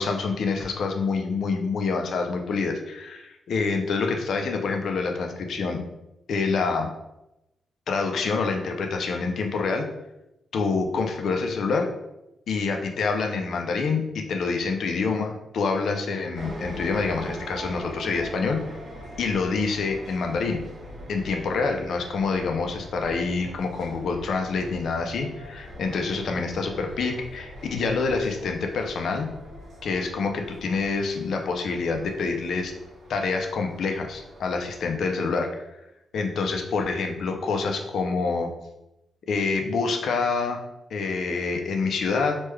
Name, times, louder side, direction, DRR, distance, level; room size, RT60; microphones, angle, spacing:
voice 1, 0.0-5.8 6.3-6.9 7.9-9.8 10.5-11.9 12.5-18.6 19.2-20.6 21.1-29.3 29.8-32.7 33.1-35.5 36.1-38.5 39.2-40.6 40.9-42.4, left 4 dB, 60° left, 4 dB, 0.4 m, -26 dB
sound 1, 16.3-34.9, equal, 80° right, 1.4 m, -42 dB
3.1 x 2.2 x 3.2 m, 0.90 s
wide cardioid pair, 165°, 0 cm